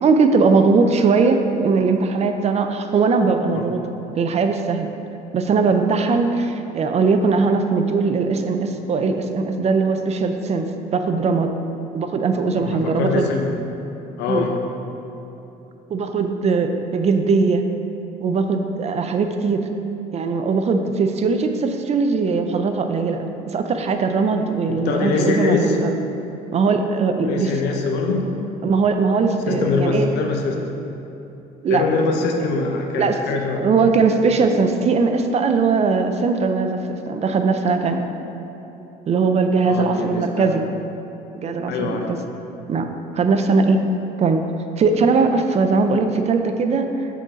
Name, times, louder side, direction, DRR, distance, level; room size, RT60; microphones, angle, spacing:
voice 1, 0.0-3.8 4.2-4.9 5.3-11.5 11.9-13.3 14.3-14.5 15.9-17.7 18.2-19.6 20.1-26.0 26.5-27.8 28.6-30.1 31.6-31.8 32.9-33.2 33.6-38.1 39.1-40.6 41.4-42.2 42.7-42.9 43.1-43.8 44.2-44.4 44.8-47.1, right 4 dB, 40° right, 6 dB, 0.5 m, -20 dB
voice 2, 12.6-13.5 14.2-14.5 24.7-25.8 27.2-28.3 29.5-30.6 31.7-33.8 39.7-40.5 41.7-42.1, left 4 dB, 90° left, 2 dB, 0.8 m, -23 dB
6.5 x 3.8 x 5.0 m, 3.0 s
cardioid pair, 110°, 17 cm